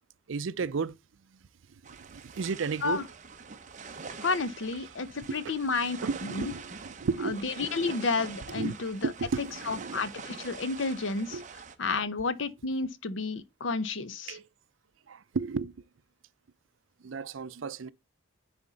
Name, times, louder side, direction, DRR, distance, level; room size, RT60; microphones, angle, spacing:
voice 1, 0.3-1.0 1.9-3.0 4.0-4.1 5.3-5.5 6.0-7.4 8.5-8.8 9.0-10.0 11.3-11.5 14.3-14.5 15.1-15.7 17.0-17.9, right 5 dB, 75° right, 0.5 m, -33 dB
sound 1, 1.8-11.7, right 5 dB, 35° right, 0.8 m, -45 dB
voice 2, 4.2-6.0 6.2-6.5 7.2-9.1 9.7-11.4 11.8-14.4, left 4 dB, 70° left, 0.8 m, -31 dB
9.9 x 4.3 x 3.9 m
head